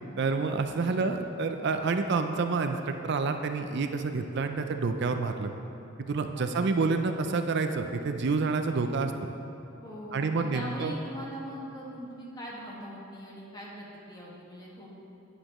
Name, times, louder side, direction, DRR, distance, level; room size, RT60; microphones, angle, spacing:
voice 1, 0.2-5.5 6.0-9.1 10.1-10.9, right 4 dB, 60° right, 7 dB, 0.4 m, -28 dB
voice 2, 6.3-6.7 9.8-14.9, equal, 20° left, -4 dB, 1.7 m, -41 dB
11.5 x 9.7 x 3.0 m, 2.8 s
head